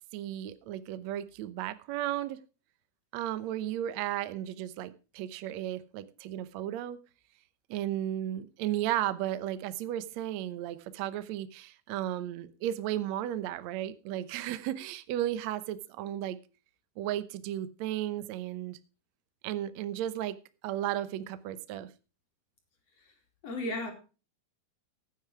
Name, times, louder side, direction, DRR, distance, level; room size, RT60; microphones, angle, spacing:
voice 1, 0.1-2.4 3.1-7.0 7.7-16.4 17.0-18.8 19.4-20.4 20.6-21.9, right 12 dB, 80° right, 1.5 m, -34 dB
voice 2, 23.4-23.9, left 1 dB, 45° left, 3.7 m, -35 dB
15.0 x 9.2 x 4.9 m
omnidirectional pair, 4.5 m